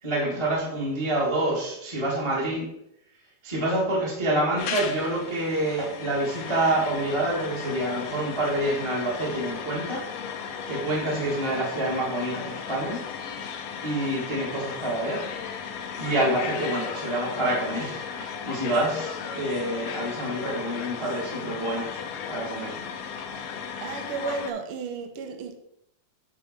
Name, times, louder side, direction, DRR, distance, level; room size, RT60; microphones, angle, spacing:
voice 1, 0.0-2.7 3.4-10.0 10.6-13.0 13.8-15.2 16.0-22.0 22.3-22.8, right 1 dB, 15° right, 1.3 m, -27 dB
sound 1, 4.6-24.5, left 6 dB, 75° left, 1.5 m, -35 dB
voice 2, 23.8-25.6, right 5 dB, 85° right, 1.2 m, -33 dB
8.8 x 3.8 x 4.6 m
omnidirectional pair, 3.5 m